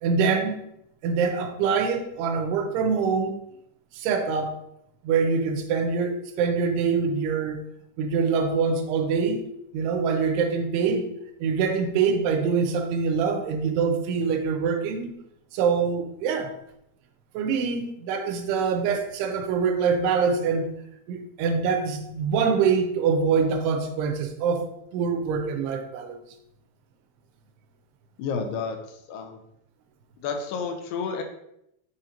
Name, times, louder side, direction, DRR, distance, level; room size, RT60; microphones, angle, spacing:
voice 1, 0.0-0.6 1.0-3.4 3.9-4.6 5.0-7.6 8.0-9.5 9.7-11.1 11.4-15.1 15.5-16.5 17.3-20.7 21.1-24.7 24.9-26.2, right 5 dB, 85° right, 2.8 m, -24 dB
voice 2, 28.2-29.4 30.2-31.2, left 5 dB, 85° left, 2.6 m, -31 dB
6.8 x 2.8 x 5.0 m
omnidirectional pair, 4.6 m